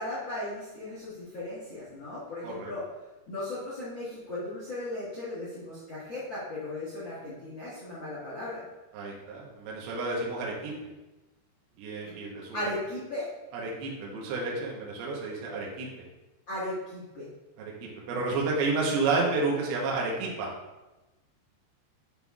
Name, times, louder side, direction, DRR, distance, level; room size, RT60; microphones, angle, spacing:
voice 1, 0.0-2.8 3.3-8.6 12.5-13.3 16.5-17.3, left 1 dB, 85° left, -9 dB, 1.0 m, -36 dB
voice 2, 8.9-10.7 11.8-12.6 13.5-15.9 17.6-17.7 18.1-20.5, right 3 dB, 70° right, -3 dB, 2.8 m, -30 dB
9.8 x 5.4 x 2.4 m, 1.1 s
omnidirectional pair, 4.9 m